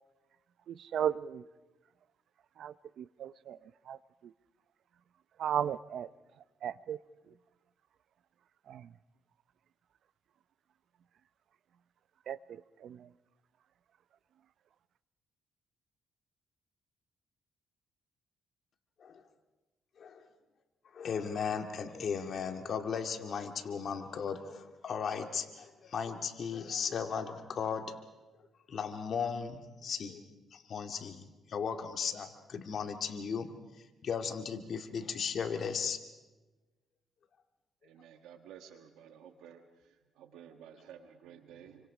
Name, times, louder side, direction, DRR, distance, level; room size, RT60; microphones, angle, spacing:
voice 1, 0.7-1.5 2.6-4.3 5.4-6.1 6.4-7.0 7.3-7.4 8.7-8.9 12.3-13.1, right 9 dB, 70° right, 17 dB, 0.6 m, -36 dB
voice 2, 20.9-28.0 28.7-30.2 30.5-33.5 34.0-36.0, left 6 dB, 55° left, 6 dB, 2.1 m, -36 dB
voice 3, 37.8-39.6 40.2-41.9, right 8 dB, 90° right, 7 dB, 1.4 m, -53 dB
28.0 x 24.5 x 5.0 m, 1.2 s
cardioid pair, 90°, 0 cm